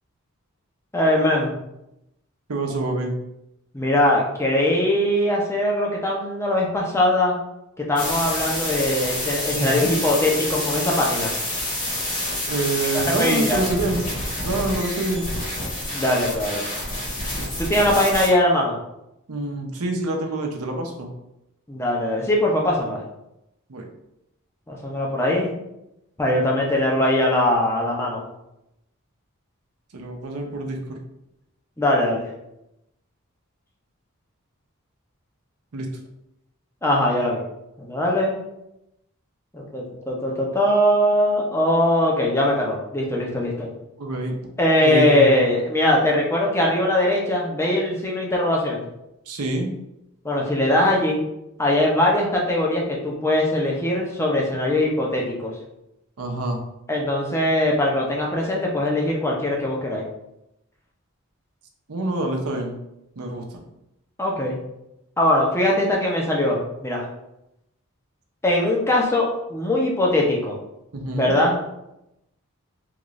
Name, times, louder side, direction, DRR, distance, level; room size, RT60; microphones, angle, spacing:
voice 1, 0.9-1.5 3.7-7.4 7.8-11.3 13.2-13.6 15.9-16.9 17.6-18.8 21.7-23.0 24.7-25.5 26.2-28.3 31.8-32.2 36.8-37.4 37.8-38.4 39.5-43.7 44.6-48.9 50.2-51.2 51.6-55.5 56.9-60.1 64.2-64.6 65.2-67.1 68.4-70.6 71.1-71.6, left 1 dB, 10° left, -2 dB, 0.6 m, -21 dB
voice 2, 2.5-3.2 9.6-9.9 12.5-14.1 14.4-15.3 19.3-21.1 23.7-23.9 29.9-31.0 35.7-35.9 44.0-44.4 44.8-45.3 49.3-49.7 56.2-56.6 61.9-62.8 63.2-63.6 70.9-71.3, right 2 dB, 80° right, 2 dB, 0.7 m, -26 dB
sound 1, 8.0-18.3, left 1 dB, 35° left, 1.3 m, -28 dB
3.7 x 2.5 x 3.1 m, 0.86 s
head